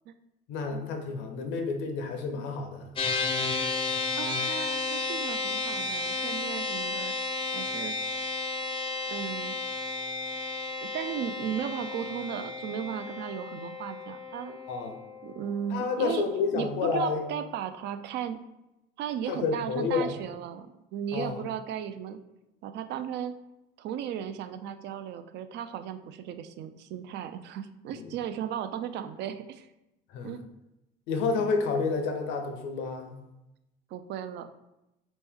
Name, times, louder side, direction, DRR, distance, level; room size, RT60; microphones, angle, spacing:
voice 1, 0.5-2.9 14.7-15.0 15.7-17.2 19.3-20.1 21.1-21.4 27.9-28.1 30.1-30.3 31.1-33.2, left 4 dB, 85° left, 5 dB, 0.7 m, -30 dB
sound 1, 3.0-16.5, left 3 dB, 30° left, 0.5 m, -33 dB
voice 2, 4.2-7.1 7.5-8.0 9.1-9.6 10.8-14.6 15.2-16.2 16.5-18.4 19.0-22.2 22.6-23.3 23.8-29.7 30.2-30.4 33.9-34.5, right 9 dB, 65° right, 10 dB, 0.4 m, -36 dB
4.2 x 3.0 x 3.5 m, 0.92 s
cardioid pair, 115°, 19 cm